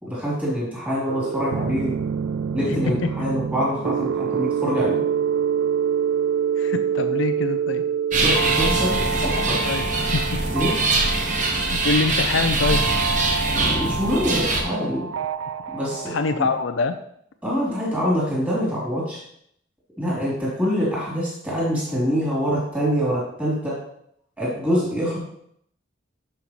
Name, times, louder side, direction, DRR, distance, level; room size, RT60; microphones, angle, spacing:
voice 1, 0.0-2.0 2.5-5.0 8.2-9.6 10.5-10.8 13.6-15.1 15.7-16.5 17.4-19.2 20.0-23.8 24.4-25.2, equal, 10° right, -8 dB, 3.3 m, -25 dB
sound 1, 1.1-16.6, right 7 dB, 80° right, 0.3 m, -27 dB
voice 2, 2.6-3.1 6.6-7.8 9.4-9.9 10.3-10.4 11.8-12.9 16.1-16.9, left 4 dB, 75° left, 8 dB, 0.5 m, -25 dB
sound 2, 8.1-14.6, right 2 dB, 40° right, 1.1 m, -23 dB
12.5 x 5.5 x 3.1 m, 0.69 s
head